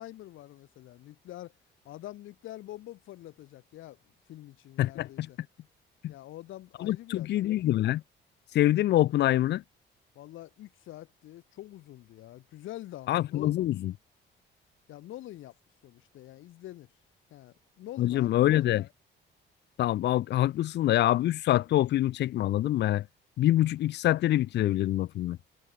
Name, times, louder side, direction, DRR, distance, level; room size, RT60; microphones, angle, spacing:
voice 1, 0.0-1.5 1.8-4.0 4.3-5.4 6.1-7.4 10.1-13.5 14.9-15.5 15.8-16.9 17.3-18.8, left 14 dB, 85° left, 3.4 m, -45 dB
voice 2, 4.8-5.3 6.0-6.1 6.8-8.0 8.5-9.6 13.1-13.9 18.0-18.8 19.8-23.0 23.4-25.4, left 14 dB, 60° left, 0.4 m, -25 dB
cardioid pair, 90°, 20 cm